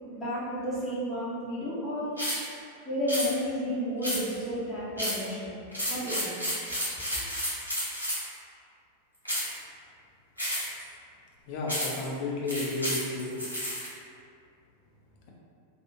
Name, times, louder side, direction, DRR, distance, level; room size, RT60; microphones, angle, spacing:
voice 1, 0.0-2.1 2.8-5.6 5.9-6.4, equal, 5° left, -13 dB, 0.9 m, -32 dB
sound 1, 2.2-2.5 3.1-3.3 4.0-4.4 5.0-5.3 5.7-8.3 9.2-9.6 10.4-10.8 11.7-12.0 12.5-13.9, equal, 90° left, 0.8 m, -31 dB
voice 2, 11.5-13.3, left 2 dB, 45° left, -3 dB, 0.6 m, -32 dB
2.6 x 2.4 x 3.0 m, 2.4 s
figure-of-eight pair, 90°, 0 cm